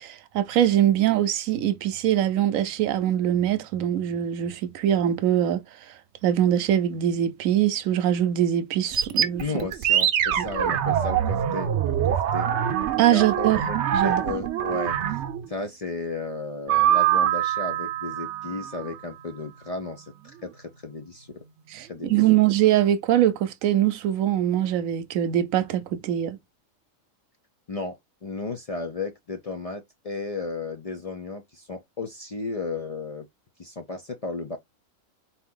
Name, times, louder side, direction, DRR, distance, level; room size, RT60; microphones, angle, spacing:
voice 1, 0.0-5.6 6.2-9.4 10.4-10.5 13.0-13.6 13.9-14.2 21.7-26.4, right 11 dB, 90° right, 1.0 m, -23 dB
sound 1, 8.9-15.5 16.7-19.3, right 10 dB, 65° right, 0.8 m, -24 dB
voice 2, 9.4-12.5 13.1-13.8 14.0-15.0 15.5-21.3 21.9-22.2 27.7-33.3 33.6-34.6, left 3 dB, 60° left, 0.4 m, -34 dB
4.1 x 2.8 x 3.7 m
omnidirectional pair, 1.4 m